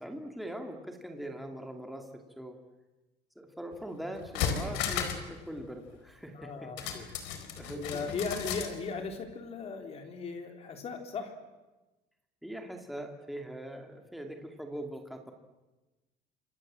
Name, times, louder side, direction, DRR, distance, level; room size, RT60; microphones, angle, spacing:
voice 1, 0.0-2.6 3.4-7.2 7.5-8.1 12.4-15.3, right 1 dB, ahead, 3 dB, 2.5 m, -42 dB
sound 1, 3.7-3.8 4.2-5.3 5.6-5.7 6.8-8.7 9.1-9.2, left 8 dB, 80° left, 4.4 m, -34 dB
voice 2, 6.3-7.1 7.4-11.4, left 4 dB, 35° left, 5 dB, 3.6 m, -38 dB
29.0 x 26.5 x 7.6 m, 1.1 s
cardioid pair, 175°, 18 cm